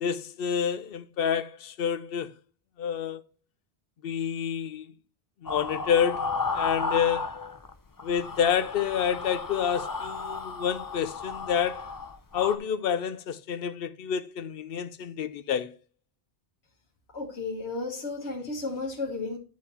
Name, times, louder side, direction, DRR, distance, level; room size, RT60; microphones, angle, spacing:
voice 1, 0.0-2.3 2.8-3.2 4.0-4.9 5.4-7.6 8.0-11.9 12.3-15.7, left 8 dB, 65° left, 0.8 m, -28 dB
sound 1, 5.5-7.7 8.0-12.6, left 4 dB, 30° left, 0.4 m, -33 dB
voice 2, 17.1-19.4, left 3 dB, 85° left, 1.7 m, -33 dB
10.0 x 4.2 x 4.2 m
omnidirectional pair, 1.1 m